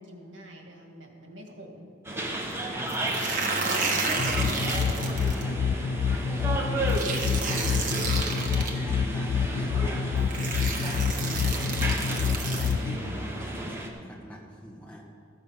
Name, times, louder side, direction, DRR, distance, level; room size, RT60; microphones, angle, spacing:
voice 1, 0.0-1.9, equal, 70° right, 2 dB, 1.9 m, -46 dB
sound 1, 2.0-13.9, right 1 dB, 15° right, 1.0 m, -33 dB
voice 2, 2.7-15.1, equal, 10° left, -4 dB, 1.7 m, -43 dB
sound 2, 2.9-5.4 6.9-8.7 9.7-9.8 10.3-12.7, right 4 dB, 45° right, 1.2 m, -31 dB
sound 3, 4.2-13.0, left 6 dB, 50° left, 0.4 m, -28 dB
14.0 x 6.8 x 5.7 m, 2.5 s
head